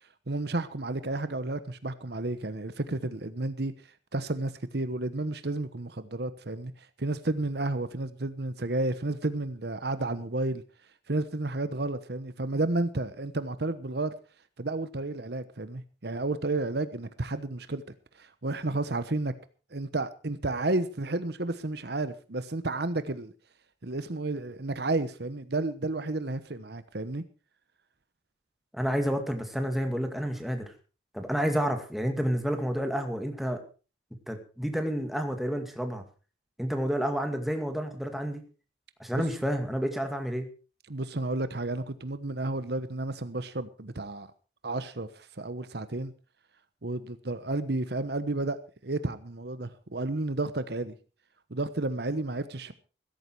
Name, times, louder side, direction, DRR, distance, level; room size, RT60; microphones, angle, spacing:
voice 1, 0.3-3.7 4.1-10.6 11.1-14.1 14.6-17.8 18.2-19.3 19.7-23.3 23.8-27.2 39.1-39.2 40.9-44.3 44.6-46.1 46.8-48.6 48.8-50.9 51.5-52.7, right 2 dB, 60° right, 1.1 m, -31 dB
voice 2, 28.7-30.7 31.1-33.6 34.3-36.0 36.6-38.4 39.0-40.5, equal, ahead, 2.1 m, -30 dB
16.0 x 14.0 x 4.6 m
head